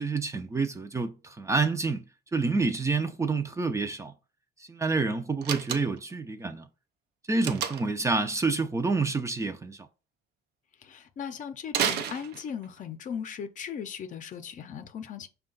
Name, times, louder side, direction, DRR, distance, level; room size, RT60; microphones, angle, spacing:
voice 1, 0.0-2.0 2.3-4.1 4.6-6.7 7.3-9.9, right 3 dB, 15° right, 0.4 m, -28 dB
Slam, 5.4-6.2 7.4-8.0 11.7-12.8, right 8 dB, 80° right, 0.6 m, -31 dB
voice 2, 10.8-15.3, left 7 dB, 50° left, 0.6 m, -38 dB
5.4 x 2.3 x 3.8 m
cardioid pair, 110°, 17 cm